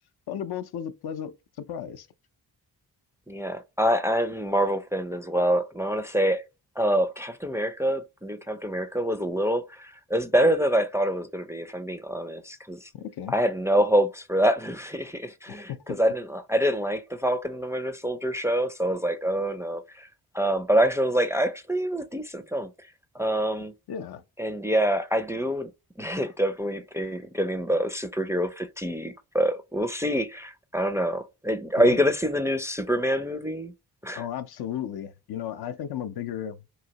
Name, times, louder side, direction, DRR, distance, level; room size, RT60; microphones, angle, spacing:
voice 1, 0.3-2.1 12.9-13.4 15.5-16.0 23.9-24.2 31.8-32.0 34.2-36.6, left 9 dB, 70° left, 0.5 m, -34 dB
voice 2, 3.3-6.4 6.8-12.9 13.3-20.1 20.3-22.7 23.1-23.7 24.4-25.7 26.0-33.7 34.0-34.2, equal, 5° right, 0.4 m, -26 dB
3.1 x 2.8 x 2.7 m
cardioid pair, 55°, 40 cm